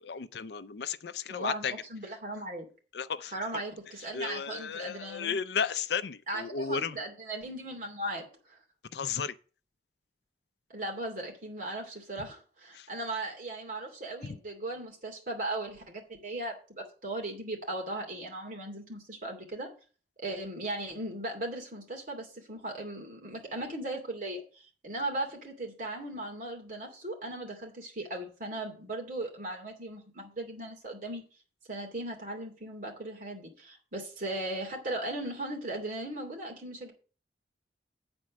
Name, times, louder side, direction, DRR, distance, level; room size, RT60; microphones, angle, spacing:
voice 1, 0.0-1.7 2.9-3.6 4.1-7.0 8.9-9.3 12.7-12.9, left 6 dB, 70° left, 0.5 m, -34 dB
voice 2, 1.3-2.7 3.3-5.4 6.3-8.3 10.7-19.7 20.2-31.2 31.7-36.9, right 1 dB, 50° right, 2.7 m, -37 dB
8.7 x 4.4 x 7.2 m
head